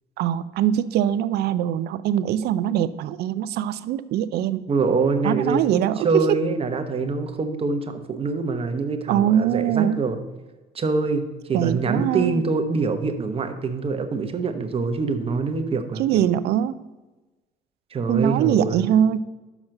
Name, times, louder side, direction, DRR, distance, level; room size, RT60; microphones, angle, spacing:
voice 1, 0.2-4.7 5.2-6.4 9.1-10.0 11.5-12.4 16.0-16.8 18.1-19.2, right 10 dB, 70° right, 15 dB, 0.5 m, -22 dB
voice 2, 4.7-5.8 6.0-10.2 10.7-16.0 17.9-18.9, right 4 dB, 35° right, 7 dB, 0.9 m, -25 dB
6.0 x 5.7 x 6.4 m, 1.2 s
cardioid pair, 110°, 17 cm